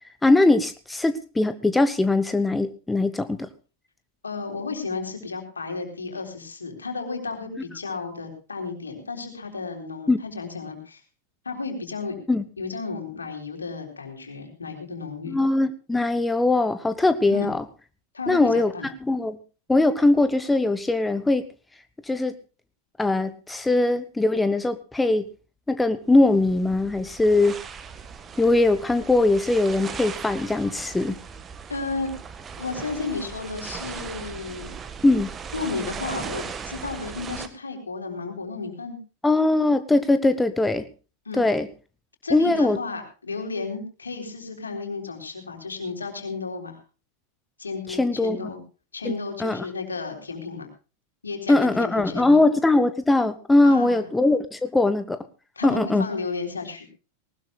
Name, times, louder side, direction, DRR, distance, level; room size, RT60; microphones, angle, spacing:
voice 1, 0.2-3.5 10.1-10.2 12.3-12.4 15.3-17.6 18.3-18.7 19.0-19.4 19.7-21.4 22.1-22.3 23.0-25.3 25.7-27.6 28.4-31.2 35.0-35.3 39.2-40.8 41.4-41.7 42.3-42.8 48.0-48.4 49.0-49.6 51.5-55.2 55.6-56.1, left 2 dB, 10° left, 12 dB, 0.9 m, -21 dB
voice 2, 4.2-11.0 11.4-12.2 12.6-15.4 17.3-17.5 18.1-18.9 31.7-32.1 32.6-34.8 35.5-39.0 41.3-41.4 42.2-46.8 47.6-48.6 48.9-50.7 51.2-52.4 53.6-54.1 55.6-56.9, left 4 dB, 75° left, 3 dB, 3.9 m, -33 dB
sound 1, 26.1-37.5, right 6 dB, 20° right, 1.5 m, -38 dB
19.5 x 19.0 x 2.3 m, 0.34 s
figure-of-eight pair, 90°, 0 cm